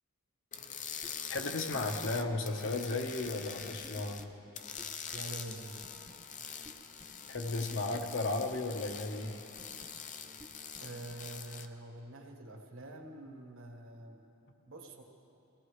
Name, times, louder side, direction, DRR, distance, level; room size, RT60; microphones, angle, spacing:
sound 1, 0.5-4.2 4.5-11.7, left 7 dB, 35° left, 0.6 m, -44 dB
sound 2, 1.0-1.1 1.4-1.5 1.7-1.8 2.1-2.4 2.9-3.0 3.2-3.3 3.6-4.2 4.8-4.9 5.1-5.2 5.5-5.6 5.8-6.1 6.6-6.7 7.0-7.1 7.3-8.0 8.5-8.6 8.9-9.0 9.2-9.3 9.6-9.9 10.4-10.5 10.7-10.8 11.1-11.2, equal, 10° right, 0.6 m, -52 dB
voice 1, 1.3-4.3 7.3-9.4, left 2 dB, 60° left, 4 dB, 1.1 m, -35 dB
voice 2, 5.1-5.7 10.8-14.2 14.7-15.0, right 2 dB, 65° right, 3 dB, 1.6 m, -46 dB
23.0 x 17.5 x 3.3 m, 2.8 s
head